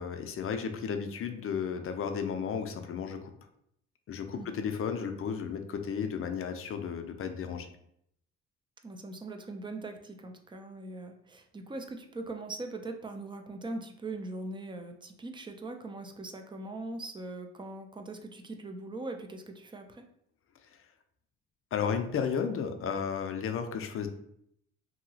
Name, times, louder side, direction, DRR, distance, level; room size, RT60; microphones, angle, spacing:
voice 1, 0.0-3.3 4.1-7.7 21.7-24.1, left 6 dB, 45° left, 6 dB, 0.4 m, -33 dB
voice 2, 8.8-20.0, right 2 dB, 15° right, 5 dB, 0.4 m, -41 dB
2.8 x 2.7 x 2.7 m, 0.71 s
cardioid pair, 90°, 30 cm